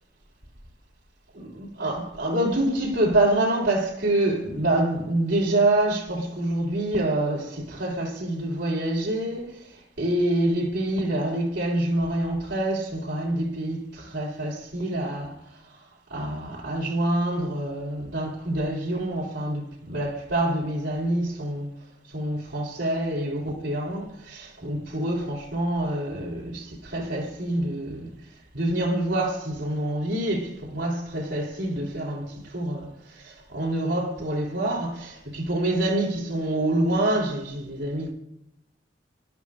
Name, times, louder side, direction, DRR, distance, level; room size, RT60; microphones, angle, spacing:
voice 1, 1.3-9.5 10.0-15.4 16.1-21.7 22.1-28.1 28.5-38.1, right 1 dB, 70° right, 3.5 m, -26 dB
25.0 x 11.5 x 2.5 m
head